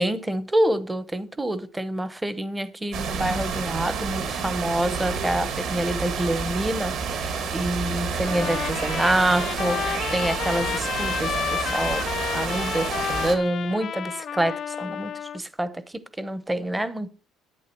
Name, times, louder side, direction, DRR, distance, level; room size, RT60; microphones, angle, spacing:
voice 1, 0.0-12.1 12.3-15.8 16.2-17.1, right 1 dB, 5° right, 0.8 m, -27 dB
sound 1, 2.9-13.4, right 5 dB, 55° right, 2.2 m, -29 dB
Trumpet, 8.2-15.4, left 8 dB, 40° left, 0.5 m, -31 dB
11.0 x 9.2 x 4.5 m
cardioid pair, 165°, 0 cm